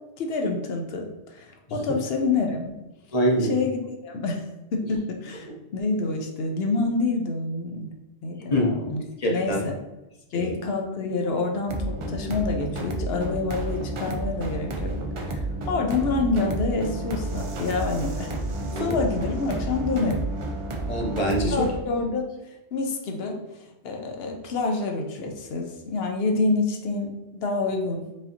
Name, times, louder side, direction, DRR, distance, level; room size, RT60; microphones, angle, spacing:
voice 1, 0.2-2.7 3.5-4.4 4.7-7.9 8.2-9.0 9.3-9.7 10.3-14.9 15.2-18.3 18.8-20.2 21.5-23.4 23.6-28.0, left 3 dB, 70° left, 2 dB, 0.8 m, -27 dB
voice 2, 3.1-3.6 5.4-5.5 8.5-8.8 9.2-9.6 10.3-10.5 18.7-19.0 20.9-21.7, equal, 40° left, 0 dB, 0.7 m, -24 dB
sound 1, 11.7-21.8, right 1 dB, 55° right, 0.3 m, -31 dB
4.9 x 2.7 x 2.7 m, 0.98 s
omnidirectional pair, 1.1 m